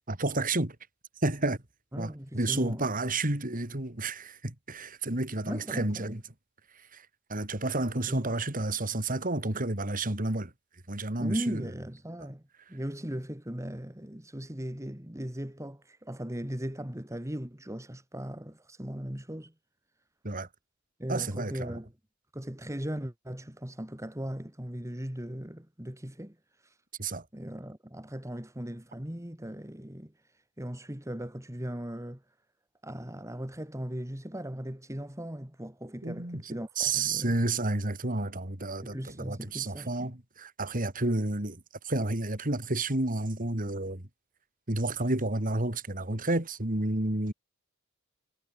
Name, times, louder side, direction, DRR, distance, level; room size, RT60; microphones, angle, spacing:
voice 1, 0.1-0.8 1.2-1.6 2.0-6.2 6.9-7.0 7.3-10.5 10.9-11.6 20.2-20.5 21.1-21.8 27.0-27.2 36.0-44.1 44.7-47.3, right 2 dB, 40° right, 3.2 m, -31 dB
voice 2, 1.9-2.9 5.5-6.2 8.1-8.3 11.2-12.4 12.7-19.5 21.0-21.9 22.3-26.4 27.3-30.1 30.6-32.2 32.8-37.4 38.8-40.1, equal, 15° right, 2.3 m, -38 dB
head